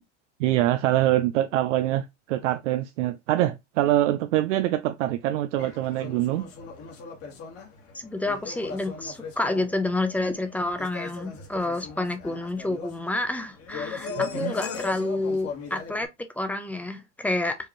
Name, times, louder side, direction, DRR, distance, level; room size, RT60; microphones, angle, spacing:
voice 1, 0.4-6.5 14.2-14.5, right 14 dB, 85° right, 0.5 m, -24 dB
sound 1, 5.6-16.1, left 5 dB, 40° left, 1.4 m, -38 dB
voice 2, 7.9-16.1 16.4-17.6, left 2 dB, 5° left, 0.4 m, -29 dB
4.7 x 2.5 x 2.9 m
supercardioid pair, 130°, 36 cm